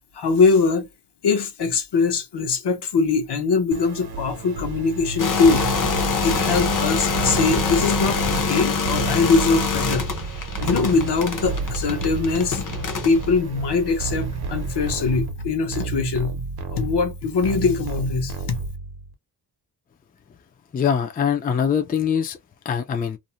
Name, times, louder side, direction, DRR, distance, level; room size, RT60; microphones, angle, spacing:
voice 1, 0.1-0.9 1.2-5.7 6.2-10.1 10.6-12.6 13.0-16.3 16.7-18.6, left 4 dB, 75° left, 0.8 m, -22 dB
sound 1, 3.7-19.1, right 4 dB, 65° right, 0.7 m, -30 dB
sound 2, 5.2-13.3, left 5 dB, 50° left, 0.6 m, -25 dB
voice 2, 20.7-22.4 22.6-23.2, left 7 dB, 25° left, 0.3 m, -23 dB
2.5 x 2.1 x 2.8 m
wide cardioid pair, 175°, 41 cm